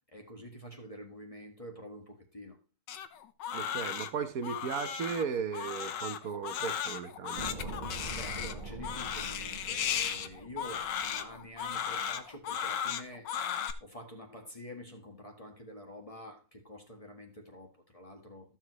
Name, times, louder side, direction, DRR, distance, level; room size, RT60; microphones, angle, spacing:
voice 1, 0.1-2.6 8.0-13.3 13.8-18.6, equal, 20° left, 1.6 m, -47 dB
Crying sobbing, 2.9-13.7, left 8 dB, 90° left, 1.6 m, -36 dB
voice 2, 3.5-7.7, right 6 dB, 60° right, 1.4 m, -36 dB
sound 1, 7.4-11.6 11.9-12.0, right 2 dB, 30° right, 1.2 m, -43 dB
14.5 x 7.5 x 3.1 m
omnidirectional pair, 1.8 m